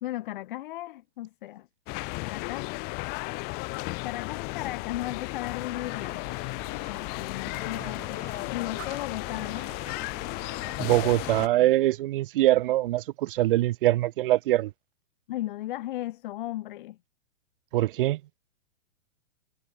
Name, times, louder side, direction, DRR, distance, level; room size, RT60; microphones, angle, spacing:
voice 1, 0.0-1.7 2.2-2.7 4.0-6.2 6.9-8.2 8.5-9.7 11.6-11.7 15.3-17.0, left 15 dB, 45° left, 0.5 m, -36 dB
sound 1, 1.9-11.5, left 30 dB, 25° left, 1.2 m, -34 dB
sound 2, 5.7-11.4, right 10 dB, 70° right, 7.6 m, -48 dB
voice 2, 10.8-14.7 17.7-18.2, right 15 dB, 45° right, 0.6 m, -23 dB
hypercardioid pair, 160°, 37 cm